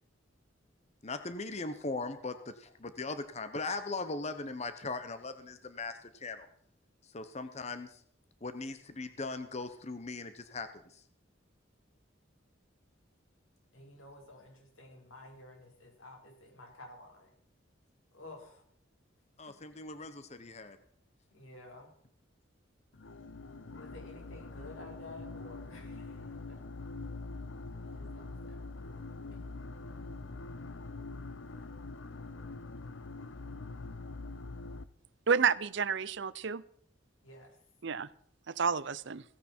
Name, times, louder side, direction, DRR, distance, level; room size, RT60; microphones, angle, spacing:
voice 1, 1.0-6.5 7.1-8.0 8.4-11.0 19.4-20.8, left 3 dB, 35° left, 0.9 m, -39 dB
voice 2, 13.7-17.3 18.1-18.6 19.5-19.6 21.3-21.9 23.7-26.6 27.8-29.0 29.3-29.4 37.2-37.6, left 2 dB, 90° left, 4.6 m, -52 dB
sound 1, 22.9-34.8, left 3 dB, 70° left, 0.8 m, -44 dB
voice 3, 35.3-36.6 37.8-38.1 38.5-39.2, right 6 dB, 60° right, 0.6 m, -30 dB
16.5 x 15.5 x 4.5 m
head